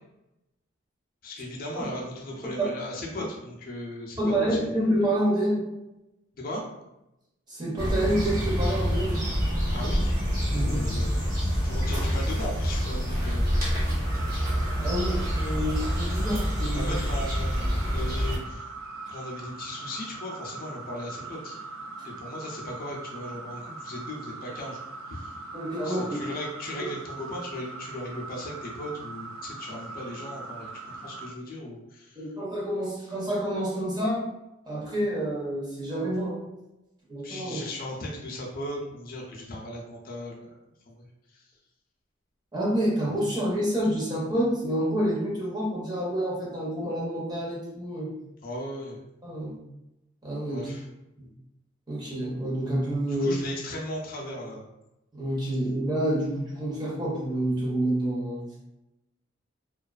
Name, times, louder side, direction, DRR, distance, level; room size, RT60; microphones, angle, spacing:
voice 1, 1.2-4.6 6.3-6.6 9.7-10.1 10.4-11.2 11.6-13.8 16.6-18.7 19.1-21.6 22.0-24.8 25.1-25.3 25.8-32.2 37.2-40.5 40.9-41.1 41.3-41.4 48.4-49.1 50.5-50.9 53.1-54.7, left 1 dB, 45° left, -2 dB, 0.4 m, -37 dB
voice 2, 4.2-5.6 7.5-9.2 10.5-10.9 14.8-16.9 25.5-26.2 32.2-34.3 34.7-36.4 37.1-37.6 42.5-48.1 49.2-49.6 50.2-50.7 51.2-51.3 51.9-53.3 55.1-58.4, right 1 dB, 20° right, -5 dB, 0.7 m, -28 dB
sound 1, 7.8-18.4, equal, 45° right, 0.9 m, -27 dB
sound 2, 14.1-31.3, right 3 dB, 85° right, 0.4 m, -41 dB
2.4 x 2.3 x 2.3 m, 0.90 s
head